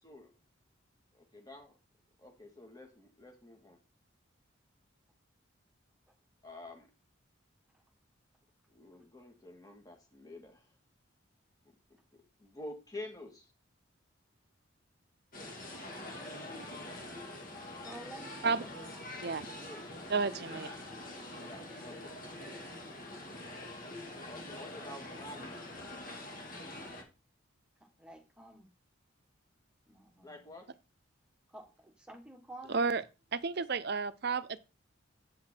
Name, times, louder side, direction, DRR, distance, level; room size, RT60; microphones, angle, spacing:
voice 1, 1.1-1.7 2.2-3.8 6.4-6.9 8.7-10.7 12.1-13.5 19.5-19.8 20.4-20.6 21.4-22.2 24.2-25.6 30.2-30.7, left 1 dB, 20° left, 2.0 m, -49 dB
sound 1, 15.3-27.0, left 1 dB, 45° left, 2.0 m, -45 dB
voice 2, 17.8-18.7 19.4-19.6 27.8-28.7 29.9-30.5 31.5-32.8, right 2 dB, 5° right, 1.6 m, -51 dB
voice 3, 20.1-20.7 32.7-33.0 33.3-34.6, right 4 dB, 50° right, 0.6 m, -31 dB
8.4 x 5.8 x 4.4 m
head